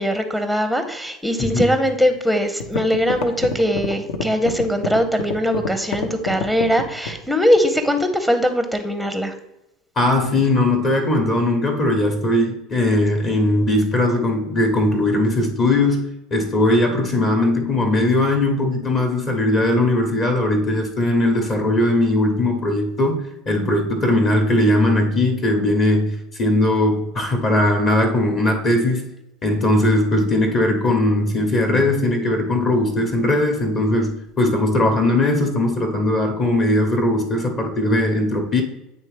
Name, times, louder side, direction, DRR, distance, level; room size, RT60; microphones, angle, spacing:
voice 1, 0.0-9.3, equal, ahead, 8 dB, 0.7 m, -21 dB
sound 1, 2.1-2.2 2.6-7.3, left 4 dB, 60° left, 0.7 m, -27 dB
voice 2, 10.0-29.1 29.4-38.6, left 1 dB, 35° left, 3 dB, 1.1 m, -19 dB
9.0 x 3.2 x 3.3 m, 0.91 s
figure-of-eight pair, 70°, 0 cm